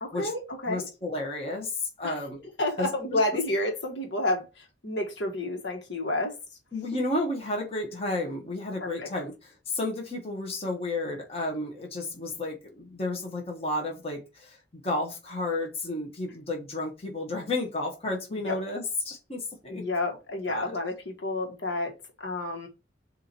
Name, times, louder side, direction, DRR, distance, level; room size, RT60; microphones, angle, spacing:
voice 1, 0.0-0.9 2.0-2.1 2.6-6.3 8.8-9.1 18.3-18.6 19.7-22.7, left 2 dB, 70° left, 1.7 m, -30 dB
voice 2, 0.7-2.5 2.8-3.2 6.7-19.9 20.5-20.8, left 2 dB, 35° left, 1.5 m, -32 dB
7.4 x 2.9 x 4.5 m
head